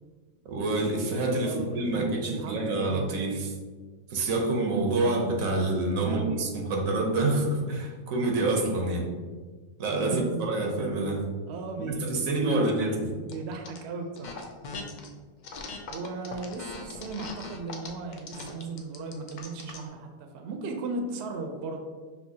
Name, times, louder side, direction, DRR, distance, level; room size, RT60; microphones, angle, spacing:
voice 1, 0.4-3.6 4.1-9.1 9.8-11.2 11.8-13.2, right 2 dB, 90° right, 1 dB, 1.2 m, -27 dB
voice 2, 1.4-3.1 6.0-6.5 10.0-10.4 11.5-14.3 15.9-21.8, right 3 dB, 65° right, 4 dB, 0.7 m, -37 dB
sound 1, 13.3-13.8 14.1-15.1 15.4-19.9, left 4 dB, 85° left, 0.4 m, -40 dB
5.5 x 2.7 x 2.7 m, 1.4 s
omnidirectional pair, 1.4 m